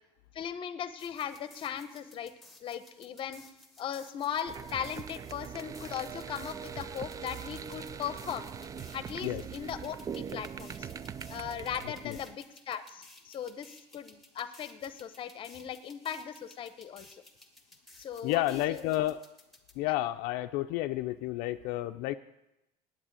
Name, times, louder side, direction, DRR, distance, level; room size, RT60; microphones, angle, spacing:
voice 1, 0.3-2.3 2.6-3.4 3.8-8.4 8.9-10.9 11.3-17.1 18.0-18.8, left 8 dB, 40° left, 13 dB, 0.8 m, -38 dB
sound 1, 1.0-19.7, left 2 dB, ahead, 1.6 m, -57 dB
sound 2, 4.5-12.3, right 7 dB, 25° right, 0.4 m, -42 dB
voice 2, 18.2-19.2 19.8-22.1, left 15 dB, 75° left, 8 dB, 0.5 m, -31 dB
8.9 x 8.7 x 9.0 m, 0.90 s
cardioid pair, 135°, 14 cm